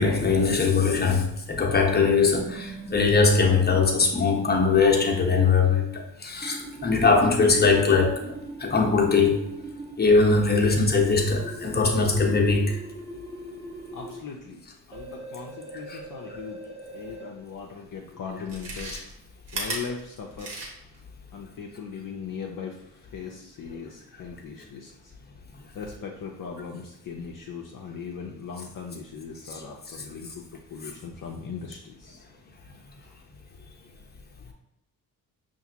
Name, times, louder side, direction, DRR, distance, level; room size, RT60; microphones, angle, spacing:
voice 1, 0.0-8.3 8.6-9.4 10.0-12.8 15.9-16.0, left 4 dB, 25° left, 1.0 m, -21 dB
sound 1, 1.8-5.3 6.4-9.9 11.1-14.2 14.9-17.3, right 2 dB, 15° right, 1.0 m, -40 dB
voice 2, 13.9-14.6 14.9-16.6 16.9-18.9 19.5-20.7 21.3-25.1 25.7-32.2 32.7-33.1, left 6 dB, 50° left, 0.7 m, -39 dB
Chewing mastication, 17.6-17.7 18.4-21.0 21.4-21.5, right 2 dB, 70° right, 1.3 m, -35 dB
5.5 x 2.6 x 2.8 m
supercardioid pair, 60°, 42 cm